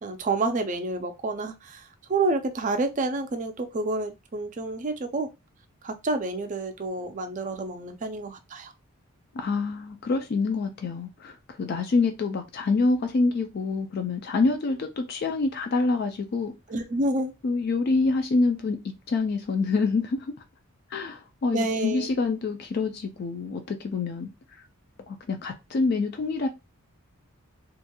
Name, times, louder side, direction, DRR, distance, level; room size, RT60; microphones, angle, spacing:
voice 1, 0.0-5.3 5.8-8.7 16.7-17.3 21.5-22.1, right 2 dB, 35° right, 0.4 m, -29 dB
voice 2, 9.3-16.5 17.4-20.3 20.9-24.6 25.1-26.5, left 3 dB, 45° left, 0.3 m, -26 dB
2.9 x 2.5 x 2.2 m
head